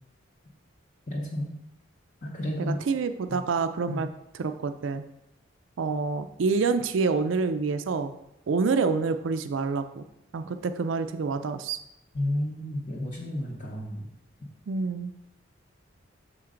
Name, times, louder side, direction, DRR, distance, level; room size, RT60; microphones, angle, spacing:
voice 1, 1.1-1.5 2.2-2.8 3.3-3.4 3.9-4.1 12.1-14.1, left 1 dB, 40° left, -2 dB, 0.8 m, -31 dB
voice 2, 2.6-4.1 4.3-5.0 5.8-8.1 8.5-10.0 10.3-11.8 14.7-15.1, right 4 dB, 70° right, 9 dB, 0.4 m, -27 dB
6.3 x 4.4 x 3.7 m, 0.83 s
head